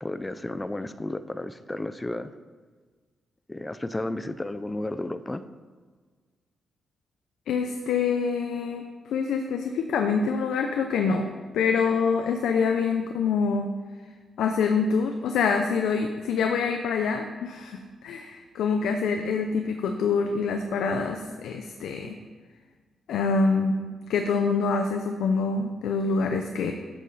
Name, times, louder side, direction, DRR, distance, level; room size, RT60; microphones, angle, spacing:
voice 1, 0.0-2.3 3.5-5.4, left 1 dB, 15° left, 12 dB, 0.5 m, -32 dB
voice 2, 7.5-11.3 11.5-13.7 14.4-22.2 23.1-23.8 24.1-26.7, left 5 dB, 90° left, 5 dB, 0.6 m, -25 dB
11.5 x 7.6 x 4.2 m, 1.5 s
cardioid pair, 110°, 0 cm